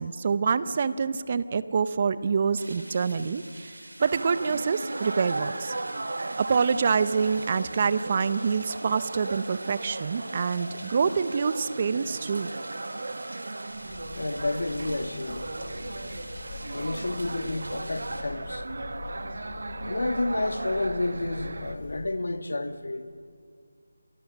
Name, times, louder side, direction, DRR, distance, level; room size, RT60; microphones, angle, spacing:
voice 1, 0.0-3.7 4.0-5.7 6.4-12.5, right 5 dB, 30° right, 0.7 m, -26 dB
sound 1, 2.6-18.2, right 1 dB, 85° right, 4.3 m, -46 dB
sound 2, 4.0-21.8, right 2 dB, 65° right, 1.3 m, -37 dB
Breathing / Bird, 13.7-22.2, left 4 dB, 30° left, 2.9 m, -43 dB
voice 2, 14.1-15.4 16.7-18.7 19.9-23.1, left 2 dB, 70° left, 1.6 m, -30 dB
27.5 x 19.0 x 7.3 m
figure-of-eight pair, 165°, 0 cm